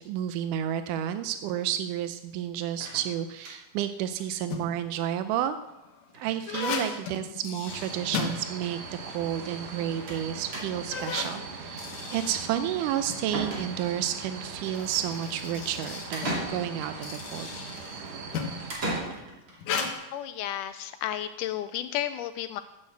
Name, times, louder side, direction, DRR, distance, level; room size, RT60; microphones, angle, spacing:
voice 1, 0.0-5.6 6.1-17.5, right 10 dB, 85° right, 10 dB, 1.9 m, -31 dB
sound 1, 2.8-3.8 4.2-4.3 4.6-4.7 4.9-5.0 6.1-6.4 6.6-7.0 7.9-8.0 8.2-8.3 10.1-10.3 10.5-11.0 12.8-12.9 13.3-14.1 16.1-17.0 18.7-19.6, right 1 dB, 35° right, 3.2 m, -36 dB
sound 2, 4.3-4.9 5.6-9.0 9.3-9.4 10.1-10.2 10.7-13.3 14.5-18.7 19.6-19.9, left 5 dB, 65° left, 2.7 m, -36 dB
sound 3, 7.7-18.7, right 4 dB, 65° right, 3.0 m, -41 dB
voice 2, 20.1-22.6, left 11 dB, 85° left, 10 dB, 1.8 m, -32 dB
13.0 x 7.1 x 8.0 m, 0.92 s
omnidirectional pair, 4.2 m